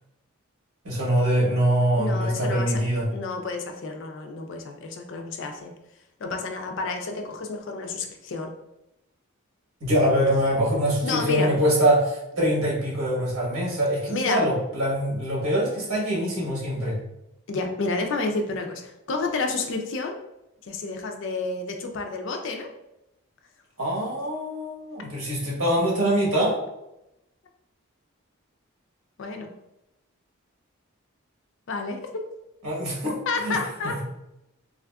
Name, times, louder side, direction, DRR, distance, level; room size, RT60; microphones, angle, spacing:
voice 1, 0.8-3.1 9.8-17.0 23.8-26.5 32.6-33.1 33.4-33.6 33.8-34.0, right 1 dB, 80° right, -4 dB, 1.2 m, -24 dB
voice 2, 2.0-2.8 3.1-5.7 6.2-8.5 11.0-11.5 14.1-14.5 17.5-20.1 20.6-22.7 29.2-29.5 31.7-32.0 33.3-34.0, left 3 dB, 60° left, 4 dB, 0.4 m, -30 dB
3.3 x 2.4 x 2.2 m, 0.88 s
head